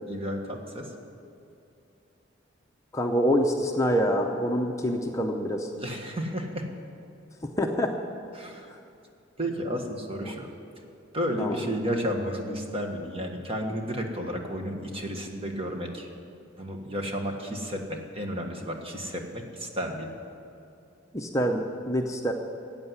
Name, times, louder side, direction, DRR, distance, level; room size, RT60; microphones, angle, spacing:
voice 1, 0.1-0.9 5.8-6.7 8.3-8.7 9.4-10.5 11.1-16.1 16.6-20.2, equal, 30° right, 2 dB, 1.6 m, -32 dB
voice 2, 2.9-5.7 7.4-7.9 10.2-10.3 11.4-11.6 21.1-22.3, equal, 15° left, 2 dB, 0.7 m, -26 dB
14.0 x 8.8 x 9.5 m, 2.6 s
head